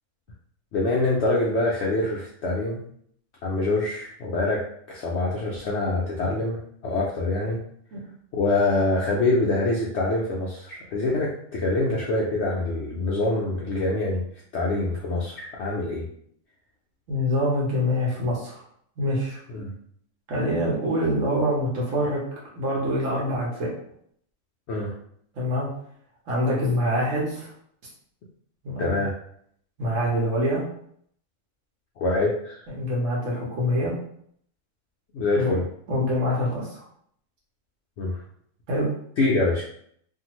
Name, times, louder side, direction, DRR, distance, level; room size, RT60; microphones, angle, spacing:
voice 1, 0.7-2.8 3.4-7.6 8.3-14.2 14.5-16.1 19.5-19.7 24.7-24.9 28.8-29.1 32.0-32.6 35.1-35.6 38.0-38.2 39.2-39.6, left 2 dB, 70° left, -3 dB, 0.6 m, -25 dB
voice 2, 17.1-18.6 19.0-19.4 20.3-22.2 22.6-23.7 25.3-25.7 26.3-27.5 28.6-29.0 29.8-30.6 32.7-33.9 35.4-35.5 35.9-36.8 38.7-38.9, equal, 60° right, -4 dB, 1.2 m, -25 dB
2.7 x 2.4 x 2.9 m, 0.66 s
omnidirectional pair, 1.6 m